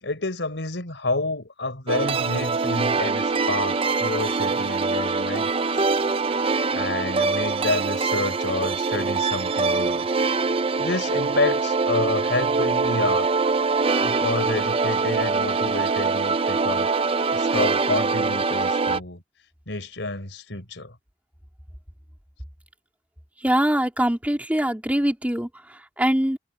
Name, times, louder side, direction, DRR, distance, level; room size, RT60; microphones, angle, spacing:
voice 1, 0.0-5.8 6.7-10.1 10.8-13.3 14.0-16.9 17.3-19.2 19.7-20.9, left 2 dB, 75° left, 4.1 m, -29 dB
sound 1, 1.9-19.0, right 4 dB, 30° right, 0.6 m, -23 dB
voice 2, 23.4-26.4, right 1 dB, 10° right, 3.1 m, -23 dB
head